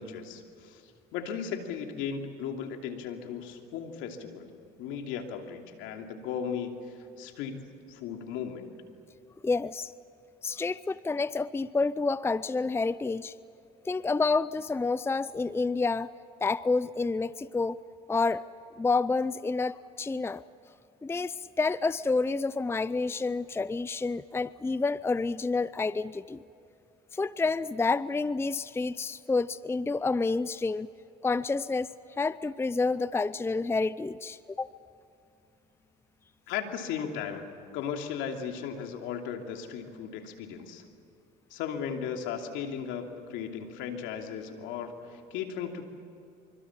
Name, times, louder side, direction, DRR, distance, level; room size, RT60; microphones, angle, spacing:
voice 1, 0.0-4.5 4.8-8.7 36.5-37.5 37.7-40.8 41.5-45.9, left 7 dB, 75° left, 4 dB, 2.9 m, -36 dB
voice 2, 9.4-9.9 10.4-13.3 13.8-16.1 16.4-17.8 18.1-18.5 18.8-20.4 21.0-26.4 27.1-30.9 31.2-34.7, left 3 dB, 10° left, 17 dB, 0.5 m, -29 dB
25.5 x 25.0 x 7.4 m, 2.7 s
supercardioid pair, 75°, 20 cm